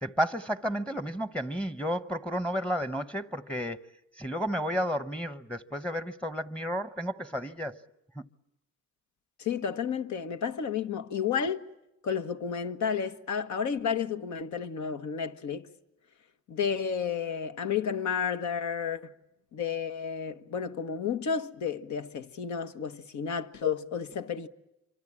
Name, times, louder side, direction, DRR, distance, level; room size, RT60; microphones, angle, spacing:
voice 1, 0.0-3.8 4.2-7.8 8.2-8.3, equal, 5° left, 0.9 m, -32 dB
voice 2, 9.4-11.6 12.0-15.7 16.5-19.1 19.5-24.5, left 7 dB, 70° left, 1.4 m, -31 dB
26.5 x 24.5 x 8.7 m
cardioid pair, 90°, 30 cm